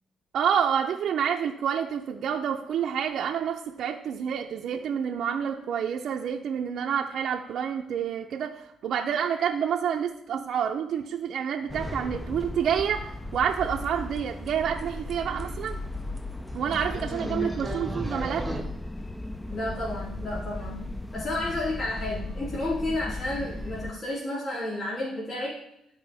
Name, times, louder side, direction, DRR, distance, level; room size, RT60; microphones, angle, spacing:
voice 1, 0.3-15.8 16.5-18.5, right 8 dB, 70° right, 1 dB, 0.5 m, -28 dB
sound 1, 11.7-23.9, left 2 dB, 10° left, 0.4 m, -36 dB
sound 2, 13.5-13.6 13.8-14.2 14.5-14.6 14.8-14.9 15.1-15.2 15.4-15.7 16.2-16.3 16.7-18.6, right 1 dB, 5° right, 1.2 m, -35 dB
voice 2, 16.6-17.5 19.5-20.8 21.1-25.6, left 1 dB, 45° left, -7 dB, 2.8 m, -32 dB
13.0 x 4.4 x 3.4 m, 0.82 s
cardioid pair, 90°, 0 cm